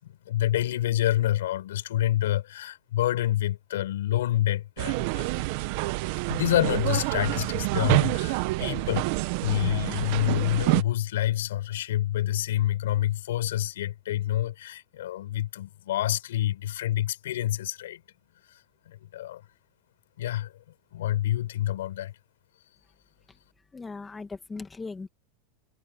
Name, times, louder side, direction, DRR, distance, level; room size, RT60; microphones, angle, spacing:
voice 1, 0.0-5.3 6.3-9.1 9.4-18.0 18.9-19.4 20.2-20.5 20.9-22.1, left 13 dB, 85° left, 5.4 m, -27 dB
sound 1, 4.8-10.8, right 22 dB, 60° right, 1.3 m, -27 dB
voice 2, 23.7-25.1, left 4 dB, 15° left, 2.2 m, -38 dB
supercardioid pair, 135°, 0 cm